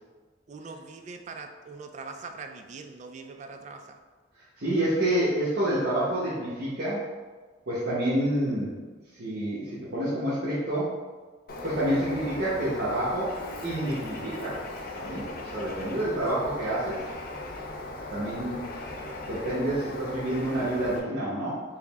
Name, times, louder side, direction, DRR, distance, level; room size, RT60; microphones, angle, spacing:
voice 1, 0.5-4.0, right 4 dB, 40° right, 5 dB, 0.3 m, -42 dB
voice 2, 4.6-7.0 7.7-8.8 9.2-10.9 11.6-13.3 13.6-14.6 14.9-17.0 18.1-18.6 19.2-21.6, right 1 dB, 55° right, -11 dB, 0.9 m, -28 dB
Bird, 11.5-21.0, left 2 dB, 50° left, 0.5 m, -38 dB
4.7 x 2.0 x 3.4 m, 1.4 s
head